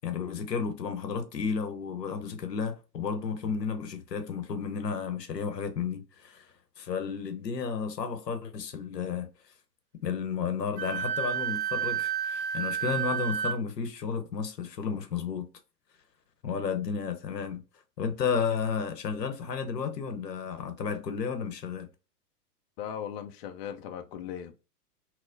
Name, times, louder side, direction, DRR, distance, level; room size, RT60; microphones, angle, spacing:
voice 1, 0.0-6.5 6.8-9.3 10.0-15.5 16.4-17.6 18.0-21.9, left 6 dB, 85° left, 0.8 m, -32 dB
Wind instrument woodwind instrument, 10.8-13.6, right 8 dB, 45° right, 0.8 m, -30 dB
voice 2, 22.8-24.5, left 9 dB, 45° left, 0.4 m, -38 dB
4.3 x 2.1 x 2.5 m
hypercardioid pair, 115°, 48 cm